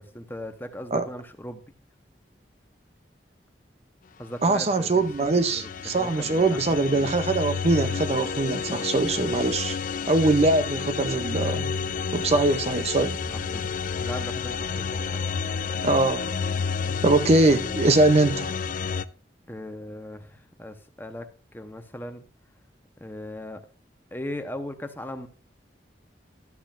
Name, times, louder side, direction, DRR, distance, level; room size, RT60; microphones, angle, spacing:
voice 1, 0.0-1.6 4.2-6.6 6.9-7.1 8.6-8.9 13.2-13.6 14.0-15.2 19.5-21.3 21.5-22.2 23.0-23.6 24.1-25.3, left 1 dB, 10° left, 0.9 m, -38 dB
voice 2, 4.4-9.8 10.1-11.7 12.1-13.2 15.8-16.3 17.0-18.5, right 2 dB, 35° right, 0.5 m, -22 dB
sound 1, 4.7-19.0, left 5 dB, 50° left, 0.4 m, -30 dB
12.0 x 8.0 x 2.5 m
head